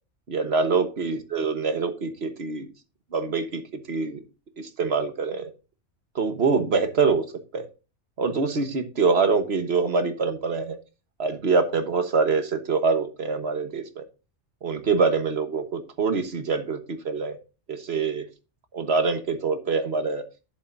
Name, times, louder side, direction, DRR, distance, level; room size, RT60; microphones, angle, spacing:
voice 1, 0.3-2.7 3.1-4.2 4.6-5.5 6.1-7.2 7.5-7.7 8.2-10.8 11.2-14.0 14.6-17.4 17.7-18.3 18.7-20.2, right 4 dB, 65° right, 8 dB, 1.4 m, -25 dB
11.5 x 7.0 x 2.6 m, 0.31 s
omnidirectional pair, 1.2 m